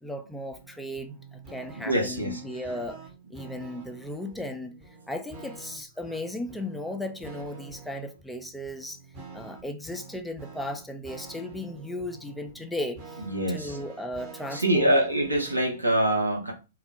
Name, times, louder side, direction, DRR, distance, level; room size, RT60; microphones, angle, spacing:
voice 1, 0.0-3.0 3.3-4.7 5.1-9.0 9.3-13.2 13.5-15.0, left 1 dB, 5° left, 0.3 m, -36 dB
sound 1, 0.5-15.8, right 4 dB, 25° right, 0.8 m, -47 dB
voice 2, 1.8-2.4 13.2-13.8 14.5-16.5, right 1 dB, 85° right, 0.7 m, -24 dB
2.3 x 2.0 x 3.2 m
figure-of-eight pair, 110°, 0 cm